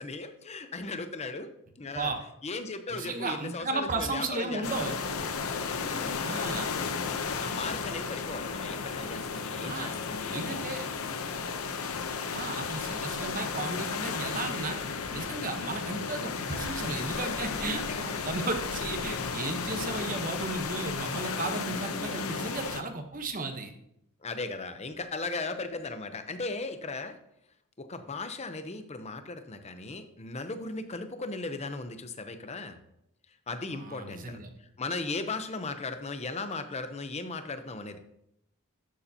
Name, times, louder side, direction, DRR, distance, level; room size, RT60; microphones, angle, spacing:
voice 1, 0.0-1.5 1.8-2.1 2.4-5.0 5.8-6.3 7.4-10.7 17.8-18.2 21.7-22.5 24.2-27.2 27.8-32.8 33.5-38.0, left 3 dB, 30° left, 9 dB, 0.7 m, -37 dB
voice 2, 2.9-4.9 6.2-6.7 9.6-9.9 10.3-10.8 12.3-14.8 15.1-23.7 33.7-34.5, right 3 dB, 40° right, 6 dB, 1.0 m, -34 dB
sound 1, 4.6-22.8, left 5 dB, 75° left, 0.8 m, -34 dB
12.0 x 7.0 x 2.8 m, 0.78 s
head